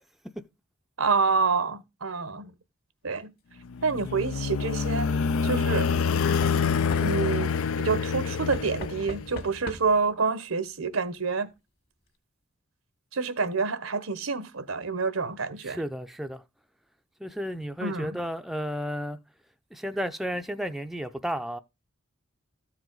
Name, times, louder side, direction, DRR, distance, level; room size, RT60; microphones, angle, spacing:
voice 1, 1.0-2.5 3.0-3.3 3.8-5.1 5.4-5.9 7.0-11.5 13.1-15.8 17.8-18.2, right 4 dB, 85° right, 1.1 m, -27 dB
sound 1, 3.7-9.5, left 5 dB, 85° left, 0.5 m, -27 dB
Knock / Wood, 3.7-4.2 5.9-7.5 8.5-10.1 11.2-11.3 11.5-11.6, left 1 dB, 50° left, 1.7 m, -41 dB
voice 2, 15.6-16.4 17.2-19.2 19.7-21.6, equal, ahead, 0.5 m, -32 dB
13.5 x 4.8 x 3.9 m
head